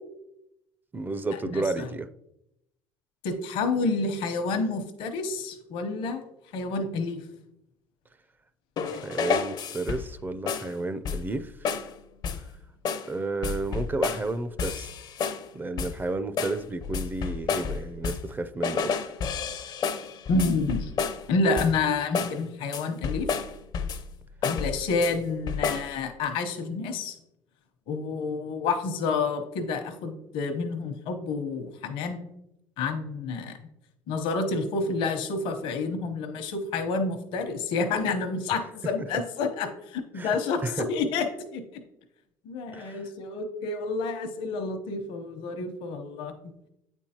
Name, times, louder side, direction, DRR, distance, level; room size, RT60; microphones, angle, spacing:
voice 1, 0.9-2.1 8.8-11.7 13.1-14.9 15.5-19.1 39.0-39.1 40.1-40.9 42.7-43.1, right 2 dB, 20° right, 12 dB, 0.4 m, -32 dB
voice 2, 1.5-1.9 3.2-6.2 6.5-7.2 20.3-20.9 21.3-23.3 24.4-27.2 27.9-32.2 32.8-33.6 34.1-41.2 41.5-41.6 42.4-46.3, left 4 dB, 75° left, 6 dB, 0.9 m, -29 dB
sound 1, 8.8-10.2 10.5-10.7 11.0-11.4 11.6-11.9 12.2-12.5 12.8-13.1 13.4-14.3 14.6-15.5 15.8-16.0 16.4-18.3 18.6-21.3 21.6-21.9 22.1-22.4 22.7-24.1 24.4-25.1 25.5-25.9, left 6 dB, 50° left, 0.5 m, -30 dB
8.4 x 4.4 x 2.9 m, 0.83 s
supercardioid pair, 80°, 9 cm